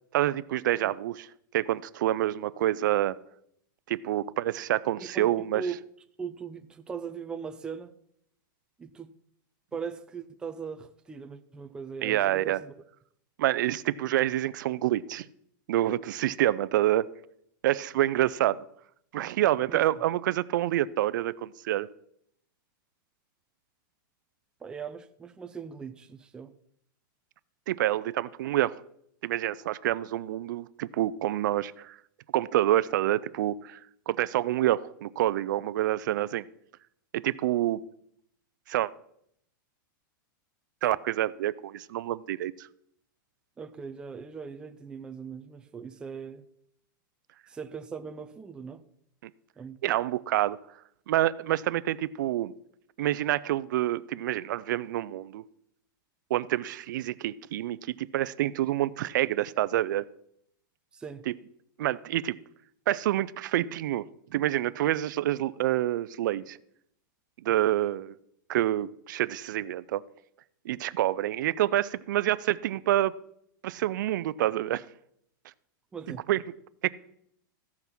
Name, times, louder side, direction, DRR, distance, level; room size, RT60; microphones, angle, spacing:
voice 1, 0.1-1.3 1.5-3.2 3.9-5.6 12.0-12.6 13.4-15.3 15.7-17.1 17.6-18.6 19.1-21.9 27.7-28.8 29.2-32.0 32.3-33.8 34.1-36.5 37.1-37.8 38.7-38.9 40.8-42.7 49.8-50.6 51.1-52.5 53.0-55.4 56.3-60.1 61.3-61.4 61.8-62.4 62.9-64.0 64.3-66.6 67.4-68.1 68.5-70.0 70.7-73.1 73.6-74.8 76.3-76.4 76.8-76.9, right 14 dB, 65° right, 0.5 m, -27 dB
voice 2, 5.1-5.7 6.2-7.9 8.8-9.1 9.7-12.7 19.6-19.9 24.6-26.5 43.6-46.4 47.5-48.8 49.6-50.0 60.9-61.2 75.9-76.2, right 6 dB, 10° right, 0.4 m, -39 dB
14.5 x 5.8 x 6.0 m
supercardioid pair, 160°, 11 cm